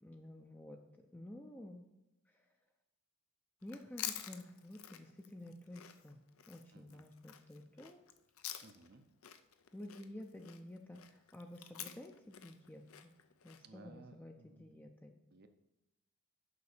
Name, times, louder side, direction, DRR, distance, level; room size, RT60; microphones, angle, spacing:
voice 1, 0.0-0.8 1.1-1.8 3.6-6.2 6.5-8.0 9.7-13.1 13.4-15.1, left 1 dB, 10° left, 2 dB, 0.5 m, -51 dB
Chewing mastication, 3.6-9.0 9.2-13.6, left 11 dB, 70° left, 0.6 m, -48 dB
voice 2, 6.7-7.0 8.6-9.1 13.6-14.9 15.3-15.5, right 3 dB, 45° right, 8 dB, 0.7 m, -59 dB
6.9 x 5.3 x 6.6 m, 0.94 s
head